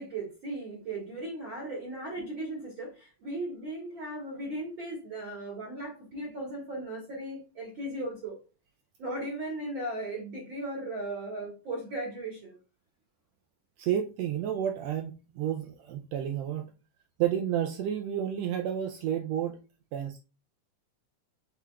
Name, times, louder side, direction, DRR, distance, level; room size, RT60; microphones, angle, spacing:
voice 1, 0.0-8.4 9.0-12.6, right 1 dB, 55° right, 1.6 m, -37 dB
voice 2, 13.8-16.7 17.2-19.6 19.9-20.2, right 10 dB, 85° right, 1.5 m, -31 dB
6.7 x 3.4 x 2.2 m
omnidirectional pair, 3.4 m